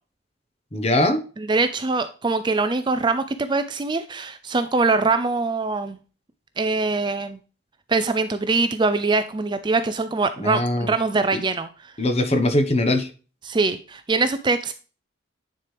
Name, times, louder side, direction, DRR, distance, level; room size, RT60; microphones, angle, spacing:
voice 1, 0.7-1.2 10.4-10.9 12.0-13.1, left 1 dB, 30° left, 7 dB, 0.9 m, -21 dB
voice 2, 1.4-6.0 6.6-7.4 7.9-11.9 13.4-14.7, right 3 dB, 20° right, 10 dB, 0.4 m, -23 dB
9.9 x 4.5 x 3.3 m, 0.36 s
head